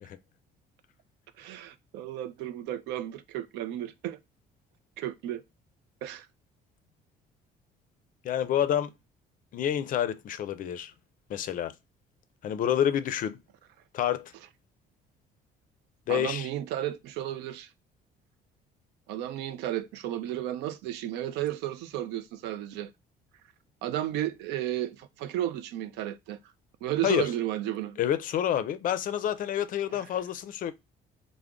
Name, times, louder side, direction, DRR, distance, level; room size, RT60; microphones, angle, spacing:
voice 1, 1.4-4.2 5.0-5.4 6.0-6.3 16.1-17.7 19.1-22.9 23.8-26.4 26.8-28.0 29.9-30.1, right 12 dB, 85° right, 0.4 m, -33 dB
voice 2, 8.2-8.9 9.5-10.9 11.3-11.7 12.4-13.4 13.9-14.3 16.1-16.5 27.0-27.3 28.0-30.7, left 10 dB, 55° left, 0.4 m, -28 dB
3.4 x 2.0 x 3.6 m
cardioid pair, 110°, 17 cm